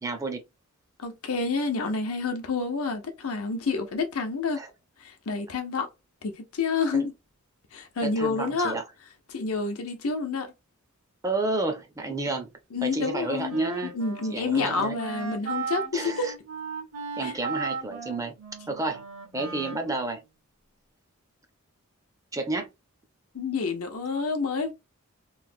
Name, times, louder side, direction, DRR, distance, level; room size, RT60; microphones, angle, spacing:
voice 1, 0.0-0.4 4.6-4.7 6.9-7.1 8.0-8.8 11.2-12.5 12.8-14.0 14.3-15.0 15.9-16.3 17.2-18.3 18.7-19.0 19.3-20.2 22.3-22.7, right 2 dB, 15° right, 0.5 m, -30 dB
voice 2, 1.0-4.6 5.0-5.9 6.2-7.1 7.7-8.8 9.3-10.5 12.7-13.6 13.9-16.3 17.2-17.3 23.3-24.7, left 4 dB, 75° left, 0.7 m, -28 dB
Wind instrument woodwind instrument, 13.0-20.3, right 5 dB, 85° right, 1.1 m, -37 dB
3.0 x 2.1 x 2.5 m
head